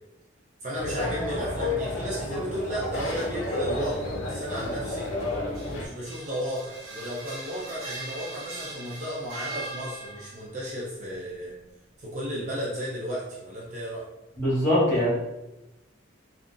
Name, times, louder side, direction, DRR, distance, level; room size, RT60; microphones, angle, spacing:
voice 1, 0.6-5.1 5.5-11.6 12.0-14.1, equal, 35° right, -5 dB, 0.5 m, -34 dB
sound 1, 0.7-5.8, left 2 dB, 80° left, 0.6 m, -31 dB
sound 2, 5.3-10.5, right 2 dB, 85° right, 0.6 m, -40 dB
voice 2, 14.4-15.1, left 1 dB, 15° left, -10 dB, 1.3 m, -22 dB
3.7 x 2.1 x 2.4 m, 0.97 s
head